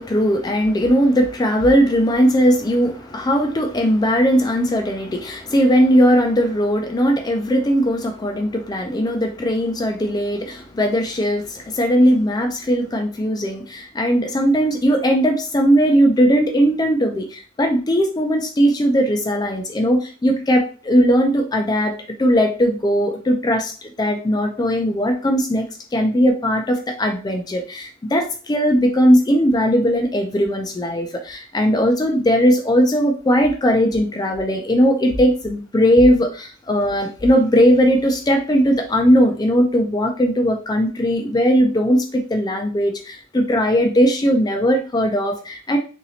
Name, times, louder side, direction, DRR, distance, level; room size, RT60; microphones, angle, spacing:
voice 1, 0.0-21.9 22.2-25.6 25.9-45.8, equal, 20° left, 4 dB, 0.4 m, -18 dB
2.9 x 2.8 x 2.7 m, 0.37 s
head